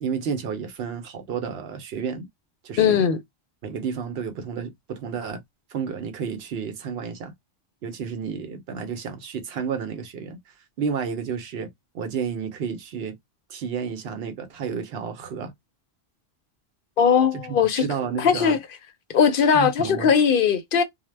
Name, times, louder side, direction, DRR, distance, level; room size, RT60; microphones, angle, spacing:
voice 1, 0.0-2.3 2.6-3.1 3.6-5.4 5.7-7.3 7.8-13.2 13.5-15.5 17.3-18.6 19.5-20.1, right 6 dB, 70° right, 0.8 m, -31 dB
voice 2, 2.8-3.2 17.0-17.8 18.2-18.6 19.1-20.8, left 7 dB, 60° left, 0.7 m, -19 dB
2.0 x 2.0 x 3.2 m
omnidirectional pair, 1.1 m